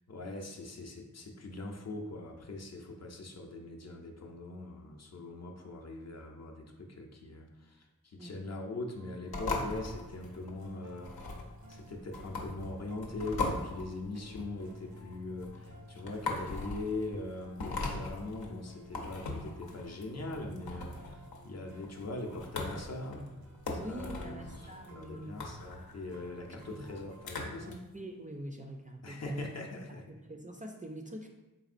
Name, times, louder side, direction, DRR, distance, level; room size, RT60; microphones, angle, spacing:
voice 1, 0.1-11.4 11.7-23.2 23.7-27.9 29.0-30.1, left 2 dB, 45° left, 1 dB, 0.5 m, -41 dB
sound 1, 9.0-27.8, equal, 75° right, 0.7 m, -55 dB
sound 2, 9.3-27.7, left 2 dB, 80° left, 0.7 m, -40 dB
voice 2, 23.8-25.4 26.6-26.8 27.9-29.5 29.9-31.3, right 1 dB, 20° right, 1 dB, 0.4 m, -44 dB
4.0 x 3.5 x 2.5 m, 1.0 s
wide cardioid pair, 70°, 36 cm